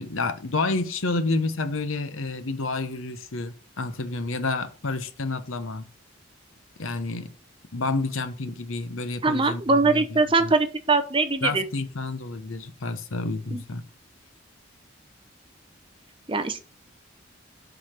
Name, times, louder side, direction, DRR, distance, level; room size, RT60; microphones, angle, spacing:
voice 1, 0.0-5.8 6.8-7.3 7.7-10.5 11.4-13.8, left 3 dB, 80° left, 0.9 m, -29 dB
voice 2, 9.2-11.6 13.5-13.6 16.3-16.6, right 3 dB, 25° right, 0.7 m, -22 dB
7.9 x 4.1 x 4.3 m
head